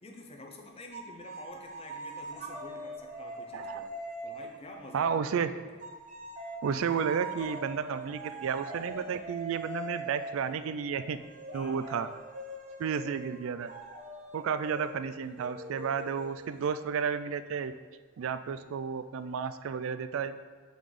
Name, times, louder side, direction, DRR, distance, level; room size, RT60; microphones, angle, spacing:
voice 1, 0.0-5.7 11.5-12.1, left 2 dB, 30° left, 1 dB, 0.7 m, -49 dB
sound 1, 0.9-5.3 5.8-17.2, right 1 dB, 35° right, 0.8 m, -43 dB
voice 2, 4.9-5.5 6.6-11.2 11.5-12.1 12.8-13.7 14.3-17.7 18.2-20.3, right 6 dB, 65° right, 11 dB, 0.3 m, -32 dB
6.9 x 3.9 x 4.9 m, 1.4 s
head